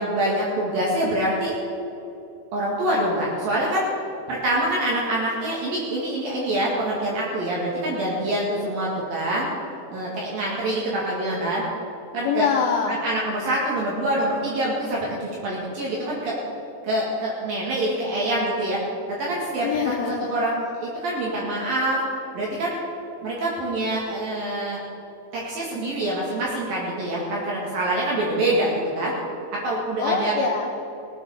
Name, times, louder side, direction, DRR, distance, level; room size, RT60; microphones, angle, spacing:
voice 1, 0.0-1.5 2.5-3.8 4.3-9.5 9.9-11.6 12.1-12.5 12.9-16.4 16.8-18.8 19.1-19.7 20.1-22.0 22.3-22.7 23.2-24.8 25.3-29.1 29.5-30.3, right 1 dB, 60° right, -4 dB, 3.4 m, -25 dB
voice 2, 12.2-13.0 19.6-20.3 30.0-30.7, left 6 dB, 75° left, 1 dB, 2.3 m, -24 dB
19.5 x 9.2 x 6.7 m, 2.9 s
omnidirectional pair, 5.2 m